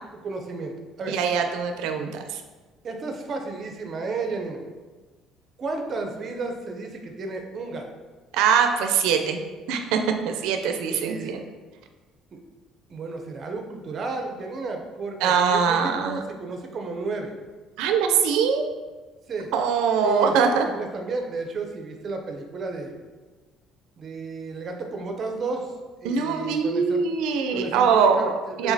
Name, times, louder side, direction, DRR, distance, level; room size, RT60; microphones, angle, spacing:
voice 1, 0.2-1.2 2.8-4.6 5.6-7.8 10.9-11.3 12.9-17.3 19.3-19.5 20.0-20.3 20.6-22.9 24.0-25.7 26.0-27.0 27.5-28.3 28.6-28.7, right 3 dB, 30° right, 3 dB, 0.5 m, -32 dB
voice 2, 1.1-2.4 8.3-9.4 9.7-10.0 10.3-11.4 15.2-16.2 17.8-18.7 19.5-20.7 26.0-28.7, right 6 dB, 90° right, 5 dB, 0.4 m, -22 dB
4.9 x 3.5 x 2.7 m, 1.3 s
cardioid pair, 175°, 0 cm